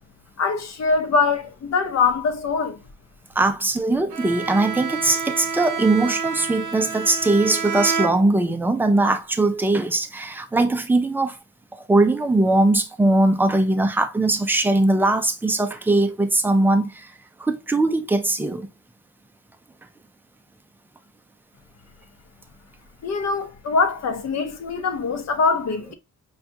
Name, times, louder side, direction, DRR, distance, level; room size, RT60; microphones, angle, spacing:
voice 1, 0.4-2.8 23.0-25.9, left 4 dB, 50° left, 0.7 m, -23 dB
voice 2, 3.4-11.4 11.9-17.1 17.4-18.7, right 2 dB, 5° right, 0.3 m, -20 dB
Bowed string instrument, 4.1-8.7, right 5 dB, 55° right, 0.8 m, -29 dB
5.6 x 2.3 x 2.6 m
wide cardioid pair, 160°, 34 cm